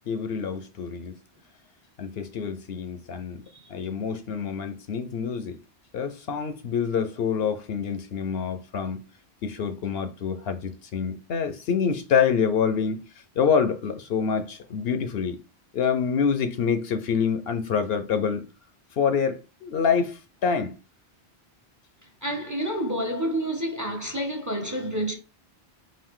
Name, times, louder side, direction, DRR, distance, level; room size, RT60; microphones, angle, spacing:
voice 1, 0.1-1.1 2.0-3.4 3.7-5.6 5.9-9.0 9.4-13.0 13.4-15.4 15.7-18.5 18.9-20.7, left 6 dB, 65° left, 0.8 m, -26 dB
voice 2, 22.2-25.1, right 1 dB, 20° right, 0.8 m, -29 dB
4.7 x 2.6 x 3.7 m
omnidirectional pair, 1.1 m